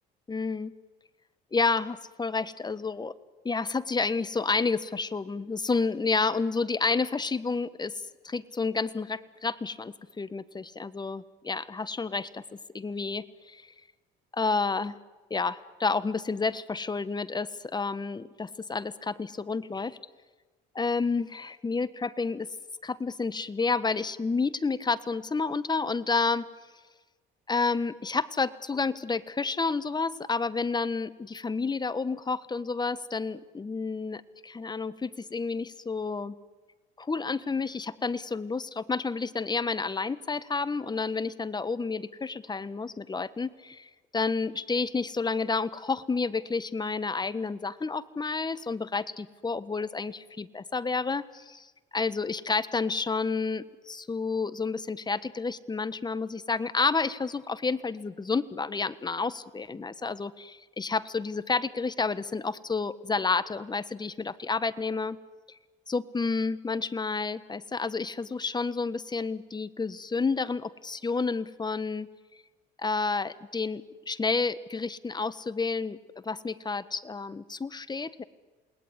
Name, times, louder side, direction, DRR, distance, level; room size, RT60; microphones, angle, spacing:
voice 1, 0.3-0.7 1.5-3.1 3.4-7.9 8.2-12.4 12.7-13.6 14.3-14.9 15.3-20.0 20.7-22.5 22.8-26.4 27.5-36.3 37.0-51.7 51.9-65.2 65.9-72.1 72.8-76.0 76.2-78.2, left 4 dB, 20° left, 16 dB, 1.4 m, -30 dB
28.0 x 20.0 x 9.9 m, 1.3 s
supercardioid pair, 90°, 19 cm